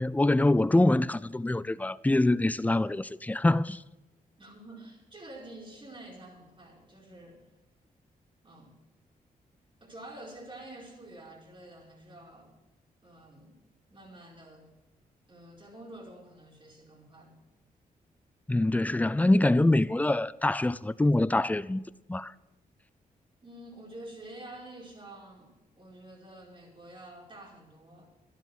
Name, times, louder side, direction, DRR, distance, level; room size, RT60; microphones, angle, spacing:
voice 1, 0.0-3.8 18.5-21.8 22.1-22.3, left 2 dB, 10° left, 0.4 m, -25 dB
voice 2, 4.4-7.4 8.4-8.7 9.8-12.5 13.0-13.6 13.9-14.7 15.3-17.4 23.4-28.1, right 1 dB, 35° right, 4.8 m, -48 dB
12.0 x 10.0 x 6.2 m
cardioid pair, 70°, 15 cm